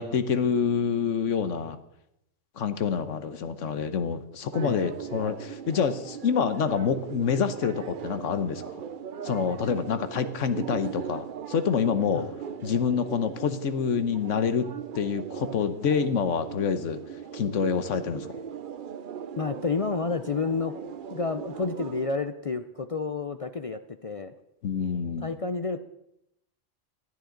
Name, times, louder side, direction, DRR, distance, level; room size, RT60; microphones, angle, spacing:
voice 1, 0.0-1.8 2.6-8.8 9.2-12.3 12.6-17.0 17.3-18.4 24.6-25.3, left 6 dB, 80° left, 11 dB, 1.3 m, -27 dB
sound 1, 4.5-22.1, right 8 dB, 50° right, 0.7 m, -39 dB
voice 2, 4.6-4.9 12.1-12.3 19.4-20.7 21.1-24.3 25.2-25.8, left 4 dB, 50° left, 9 dB, 0.4 m, -30 dB
18.5 x 12.5 x 3.9 m, 0.82 s
omnidirectional pair, 1.3 m